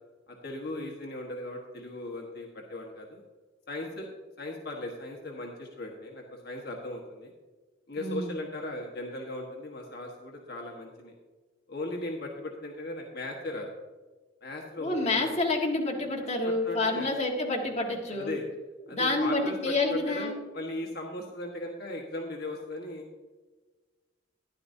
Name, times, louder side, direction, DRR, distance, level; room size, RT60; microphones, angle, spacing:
voice 1, 0.3-3.2 3.7-4.1 4.4-7.3 7.9-11.1 11.7-13.7 14.4-15.4 16.4-17.1 18.1-18.4 18.9-23.0, left 1 dB, 55° left, 0 dB, 1.3 m, -37 dB
voice 2, 8.0-8.3 14.8-18.3 18.9-20.3, left 2 dB, 35° left, -1 dB, 1.6 m, -28 dB
13.0 x 11.0 x 2.7 m, 1.3 s
head